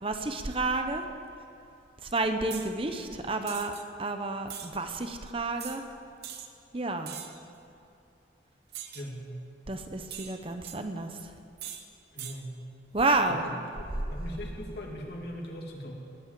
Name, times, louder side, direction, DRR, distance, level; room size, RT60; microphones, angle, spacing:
voice 1, 0.0-1.1 2.0-3.7 4.0-5.8 6.7-7.2 9.7-11.3 12.9-13.4, right 2 dB, 30° right, 6 dB, 0.8 m, -30 dB
sound 1, 2.5-2.7 3.5-3.8 4.5-4.7 5.6-5.8 6.2-6.5 7.1-7.4 8.7-9.1 10.1-10.8 11.6-11.8 12.2-12.4, right 9 dB, 60° right, 1.1 m, -41 dB
voice 2, 12.1-12.5 13.2-13.5 13.8-15.9, equal, 60° left, -1 dB, 2.6 m, -40 dB
20.5 x 8.7 x 7.6 m, 2.7 s
head